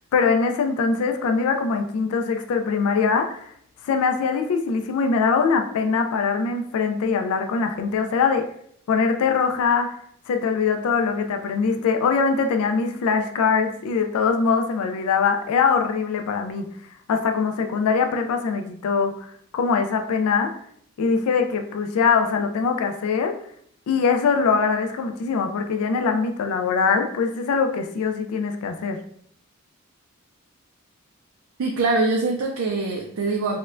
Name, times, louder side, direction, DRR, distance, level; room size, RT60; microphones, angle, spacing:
voice 1, 0.1-3.5 3.8-8.5 8.9-10.0 10.3-16.7 17.1-19.3 19.5-20.5 21.0-23.4 23.9-29.0, left 5 dB, 85° left, 5 dB, 0.3 m, -22 dB
voice 2, 31.6-33.6, right 3 dB, 75° right, 1 dB, 0.4 m, -23 dB
4.2 x 2.1 x 2.5 m, 0.68 s
head